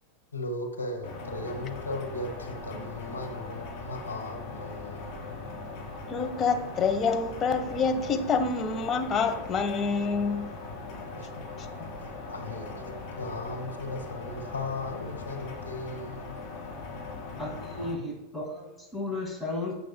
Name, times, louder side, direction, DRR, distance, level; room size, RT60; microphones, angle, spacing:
voice 1, 0.3-5.3 11.1-11.4 12.3-12.8 13.2-16.3, left 2 dB, 90° left, 1.3 m, -37 dB
sound 1, 1.0-17.9, left 3 dB, 50° left, 3.0 m, -40 dB
voice 2, 6.1-10.4, left 5 dB, 30° left, 1.1 m, -27 dB
voice 3, 17.4-19.7, left 2 dB, ahead, 2.5 m, -34 dB
15.0 x 6.4 x 2.3 m
figure-of-eight pair, 90°, 0 cm